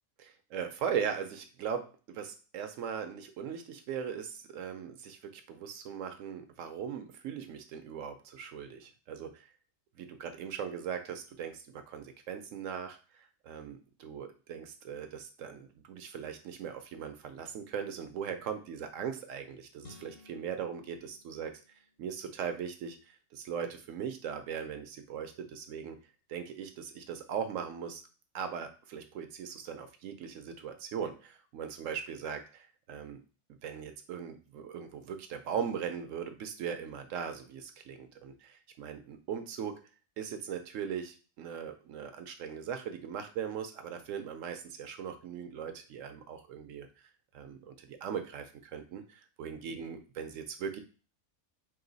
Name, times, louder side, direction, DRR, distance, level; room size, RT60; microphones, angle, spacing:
voice 1, 0.2-9.5 10.0-21.5 22.0-26.0 26.3-28.0 28.3-33.2 33.6-39.8 40.2-46.9 47.3-50.8, right 7 dB, 70° right, 7 dB, 0.9 m, -39 dB
sound 1, 19.8-22.2, left 3 dB, 85° left, 1.4 m, -57 dB
3.0 x 2.8 x 3.9 m, 0.36 s
omnidirectional pair, 1.5 m